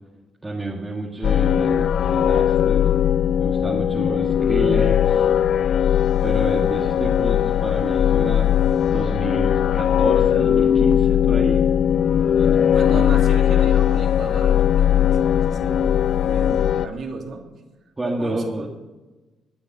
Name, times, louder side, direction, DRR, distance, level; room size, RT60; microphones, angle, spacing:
voice 1, 0.4-2.8 3.4-5.3 6.2-8.5 8.9-11.6 12.4-13.0 16.5-16.6 18.0-18.7, right 2 dB, 20° right, -2 dB, 1.9 m, -30 dB
sound 1, 1.2-16.9, left 9 dB, 65° left, 0.5 m, -19 dB
voice 2, 12.7-17.5 18.0-18.7, right 3 dB, 60° right, 1 dB, 2.7 m, -35 dB
20.0 x 6.8 x 6.7 m, 1.2 s
cardioid pair, 90°, 0 cm